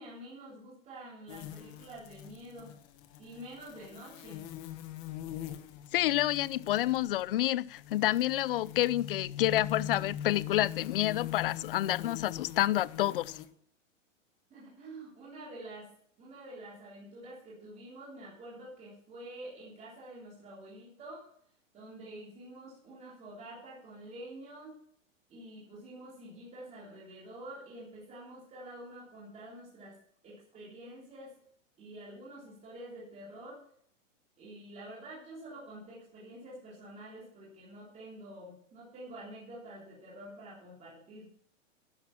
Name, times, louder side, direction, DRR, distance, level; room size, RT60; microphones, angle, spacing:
voice 1, 0.0-2.7 3.2-4.4 14.5-15.9 16.2-21.2 21.7-24.8 25.3-30.0 30.2-31.3 31.8-33.6 34.4-41.3, right 1 dB, 15° right, 3.5 m, -48 dB
sound 1, 1.3-13.5, left 11 dB, 30° left, 1.2 m, -43 dB
voice 2, 5.9-13.4, left 14 dB, 45° left, 0.5 m, -29 dB
12.5 x 9.9 x 5.8 m
hypercardioid pair, 155°, 39 cm